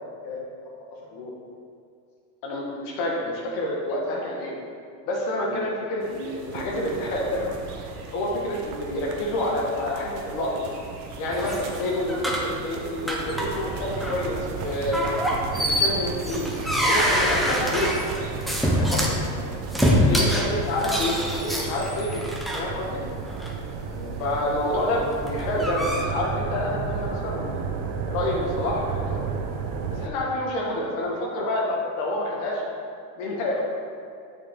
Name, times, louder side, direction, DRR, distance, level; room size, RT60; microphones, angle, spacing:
voice 1, 0.0-1.3 5.4-5.7 19.1-19.3 20.0-20.3 23.9-24.2, left 3 dB, 45° left, -3 dB, 1.4 m, -39 dB
voice 2, 2.4-4.6 5.0-7.5 8.1-10.7 11.2-15.0 15.6-16.5 16.8-18.1 18.7-19.2 19.9-22.2 22.5-23.0 24.2-27.6 28.1-29.2 29.9-32.6 33.2-33.6, left 1 dB, 70° left, -3 dB, 1.5 m, -28 dB
sound 1, 6.0-19.7, right 4 dB, 85° right, 1.0 m, -39 dB
sound 2, 11.3-12.5 13.1-13.7 13.9-14.2 14.9-19.2 19.7-22.6 23.3-23.5 25.1-26.0, equal, ahead, 0.7 m, -25 dB
sound 3, 13.3-30.1, right 5 dB, 45° right, 0.7 m, -33 dB
6.8 x 5.1 x 3.7 m, 2.4 s
supercardioid pair, 115°, 47 cm